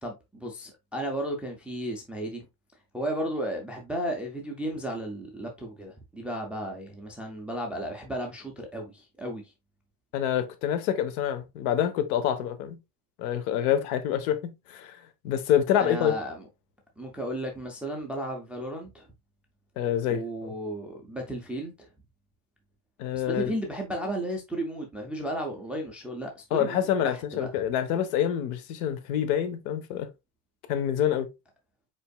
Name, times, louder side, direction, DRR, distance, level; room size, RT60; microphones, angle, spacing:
voice 1, 0.0-2.5 2.9-9.5 15.8-16.5 17.0-19.1 20.0-21.7 23.1-27.7, right 1 dB, 5° right, 0.3 m, -34 dB
voice 2, 10.1-12.8 13.2-15.0 15.2-16.1 19.8-20.5 23.0-23.5 26.5-30.1 30.7-31.3, left 10 dB, 70° left, 1.1 m, -27 dB
5.3 x 4.4 x 2.3 m
cardioid pair, 165°, 44 cm